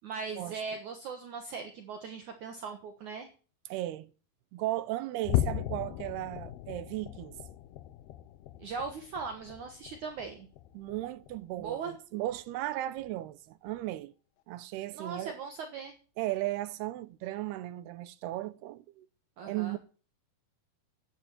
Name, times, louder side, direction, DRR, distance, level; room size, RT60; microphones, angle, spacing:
voice 1, 0.0-3.3 8.6-10.5 11.6-11.9 14.9-15.9 19.4-19.8, right 5 dB, 60° right, 2.4 m, -39 dB
voice 2, 3.7-4.1 4.5-7.4 10.7-14.1 14.5-15.4 16.2-19.1 19.4-19.8, right 16 dB, 80° right, 2.8 m, -36 dB
sound 1, 5.2-11.9 12.3-12.6 13.0-13.1 13.7-13.8, left 13 dB, 80° left, 2.7 m, -37 dB
11.5 x 9.4 x 9.0 m
omnidirectional pair, 4.7 m